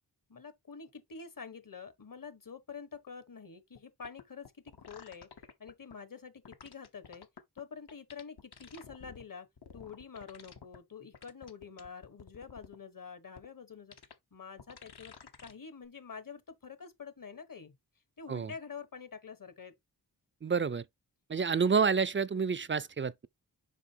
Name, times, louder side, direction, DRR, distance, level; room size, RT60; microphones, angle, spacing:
voice 1, 0.3-5.3 5.6-7.3 7.5-9.5 9.7-13.9 14.3-17.8 18.2-19.7, left 6 dB, 55° left, 1.2 m, -47 dB
sound 1, 3.7-3.8 4.0-5.9 6.4-7.6 7.9-9.2 9.6-10.8 11.1-12.8 13.4-13.5 13.9-14.1 14.6-15.5 15.8-15.9, left 6 dB, 75° left, 1.1 m, -51 dB
voice 2, 20.4-20.8 21.3-23.3, right 5 dB, 30° right, 0.4 m, -29 dB
7.4 x 5.5 x 2.8 m
wide cardioid pair, 90°, 40 cm